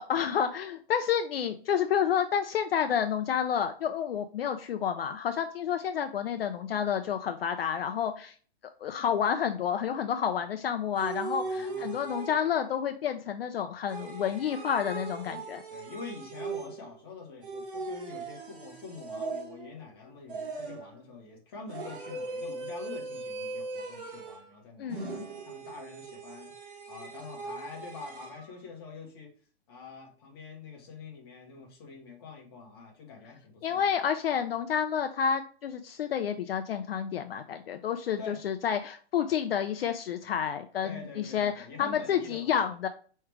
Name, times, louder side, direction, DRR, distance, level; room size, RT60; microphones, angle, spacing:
voice 1, 0.1-8.3 8.8-15.6 24.8-25.3 33.6-42.9, left 8 dB, 60° left, 7 dB, 0.4 m, -30 dB
sound 1, 11.0-12.7 13.9-17.0 17.4-19.8 20.3-21.0 21.7-24.5 24.9-28.4, right 3 dB, 50° right, 1.4 m, -39 dB
voice 2, 11.4-12.1 14.3-14.4 15.7-29.3 29.7-33.9 38.2-38.4 40.8-42.5, left 4 dB, 20° left, -1 dB, 0.9 m, -46 dB
4.7 x 3.2 x 3.1 m, 0.43 s
hypercardioid pair, 180°, 33 cm